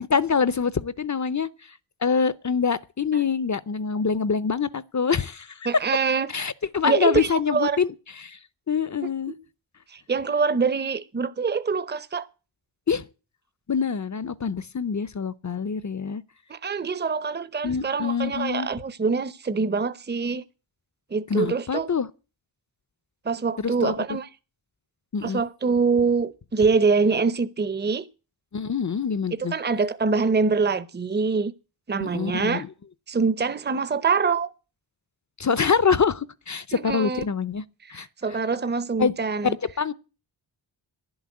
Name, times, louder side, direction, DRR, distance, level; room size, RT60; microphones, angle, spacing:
voice 1, 0.0-5.7 6.3-8.4 8.7-9.3 12.9-13.0 13.7-16.2 17.6-18.7 21.3-22.1 23.6-24.0 25.1-25.4 28.5-29.5 32.0-32.7 35.4-37.6 37.9-38.1 39.0-39.1 39.6-39.9, left 6 dB, 40° left, 0.7 m, -25 dB
voice 2, 5.6-6.3 6.8-7.8 9.3-9.4 9.9-12.3 16.5-20.4 21.1-21.9 23.2-24.3 25.2-28.0 29.3-31.5 31.9-32.6 33.1-34.5 36.7-37.3 38.2-39.6, right 5 dB, 25° right, 0.7 m, -24 dB
11.0 x 8.0 x 8.4 m
wide cardioid pair, 75°, 45 cm